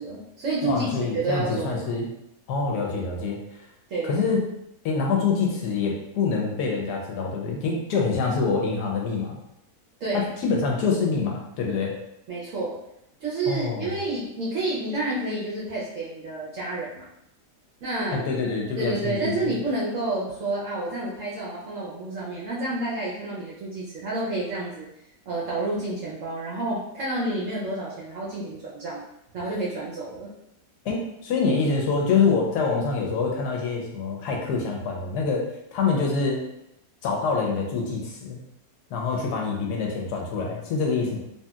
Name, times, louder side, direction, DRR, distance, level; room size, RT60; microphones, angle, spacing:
voice 1, 0.0-2.0 3.9-4.2 10.0-10.2 12.3-12.7 13.2-17.0 17.8-18.2 18.8-24.9 25.3-29.0 29.3-30.3, right 2 dB, 65° right, -6 dB, 0.8 m, -29 dB
voice 2, 0.6-2.1 2.5-3.4 4.0-4.4 4.8-9.4 10.1-11.9 13.5-13.9 18.1-19.6 30.8-35.4 35.7-36.4 37.0-38.4 38.9-41.2, left 4 dB, 75° left, -1 dB, 1.1 m, -25 dB
3.0 x 2.7 x 2.3 m, 0.81 s
omnidirectional pair, 1.8 m